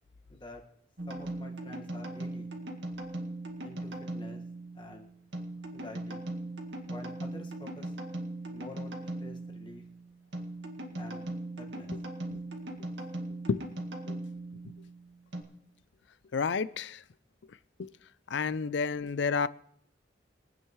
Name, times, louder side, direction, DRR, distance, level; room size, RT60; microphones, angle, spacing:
voice 1, 0.3-0.6 1.1-2.5 3.6-4.4 4.7-5.1 5.7-6.3 6.9-7.9 8.5-9.8 10.9-11.2 11.6-11.9, left 1 dB, 25° left, 1.7 m, -48 dB
sound 1, 1.0-15.4, right 1 dB, 65° right, 2.0 m, -39 dB
voice 2, 16.3-17.0 17.8-17.9 18.3-19.5, left 5 dB, 65° left, 0.4 m, -30 dB
23.5 x 9.1 x 3.2 m
head